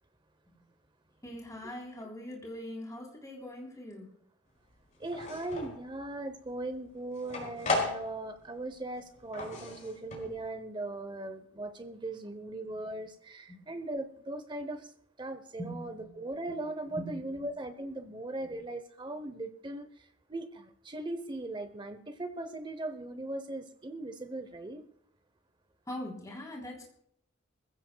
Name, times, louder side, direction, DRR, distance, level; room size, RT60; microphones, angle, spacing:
voice 1, 1.2-4.1 13.5-13.6 15.6-16.1 16.9-17.1 25.9-27.0, left 1 dB, 15° left, -1 dB, 3.5 m, -42 dB
sound 1, 4.8-5.8 6.3-8.5 8.7-10.5, left 2 dB, 40° left, 5.2 m, -36 dB
voice 2, 5.0-14.9 15.2-19.9 20.3-24.8, right 2 dB, 25° right, 10 dB, 0.8 m, -39 dB
25.5 x 15.5 x 2.3 m, 0.70 s
head